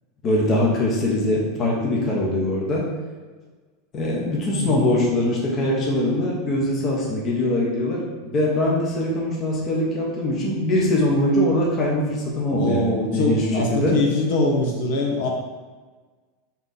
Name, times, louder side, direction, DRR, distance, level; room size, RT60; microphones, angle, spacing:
voice 1, 0.2-2.9 3.9-13.4 13.7-14.0, left 1 dB, 25° left, -4 dB, 1.1 m, -22 dB
voice 2, 12.5-15.3, left 2 dB, 60° left, -1 dB, 1.3 m, -23 dB
4.4 x 4.0 x 5.5 m, 1.4 s
supercardioid pair, 170°, 0 cm